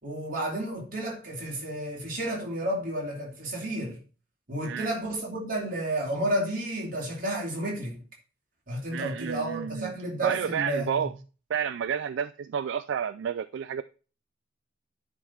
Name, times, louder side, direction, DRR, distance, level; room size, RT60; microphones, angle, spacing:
voice 1, 0.0-4.0 4.5-8.0 8.7-11.1, right 1 dB, 45° right, 2.9 m, -31 dB
voice 2, 4.6-5.0 8.9-9.9 10.2-11.1 11.5-13.8, right 8 dB, 65° right, 0.3 m, -30 dB
10.0 x 3.8 x 6.1 m
head